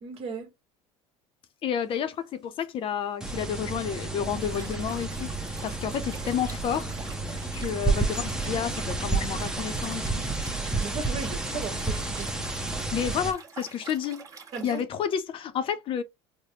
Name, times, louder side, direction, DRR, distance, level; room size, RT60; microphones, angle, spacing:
voice 1, 0.0-0.5 10.8-12.5 14.5-14.8, right 4 dB, 50° right, 1.3 m, -36 dB
voice 2, 1.6-6.9 7.5-10.2 12.9-14.2 14.6-16.0, left 8 dB, 45° left, 0.6 m, -30 dB
sound 1, 3.2-13.3, right 3 dB, 5° right, 0.7 m, -31 dB
Liquid, 4.3-14.8, right 5 dB, 25° right, 1.1 m, -47 dB
4.0 x 2.1 x 3.1 m
supercardioid pair, 115°, 13 cm